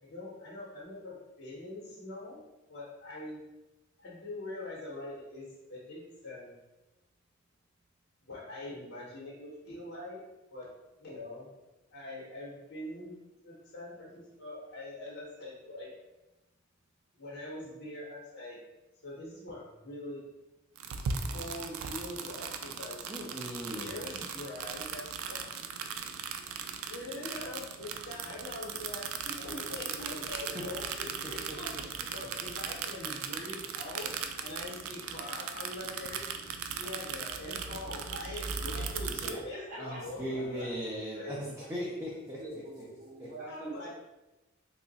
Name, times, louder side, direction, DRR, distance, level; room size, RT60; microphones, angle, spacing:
voice 1, 0.0-3.4 4.0-6.5 8.2-10.2 10.5-10.7 11.0-11.5 11.9-13.1 13.4-15.9 17.1-18.6 19.0-20.2 21.3-23.1 23.6-25.5 26.9-31.7 32.1-36.2 36.7-40.7 41.1-41.3 41.6-41.7 43.4-43.9, left 1 dB, 55° left, -5 dB, 1.0 m, -43 dB
sound 1, 20.7-39.3, right 6 dB, 90° right, 0.3 m, -38 dB
voice 2, 23.1-23.9 30.3-30.4 31.2-31.8 39.8-42.4 43.2-43.3, equal, 15° right, -6 dB, 0.5 m, -38 dB
voice 3, 26.9-27.5 39.2-39.4 39.7-40.0 42.4-43.9, right 1 dB, 40° right, -7 dB, 1.1 m, -45 dB
2.9 x 2.4 x 3.9 m, 1.0 s
head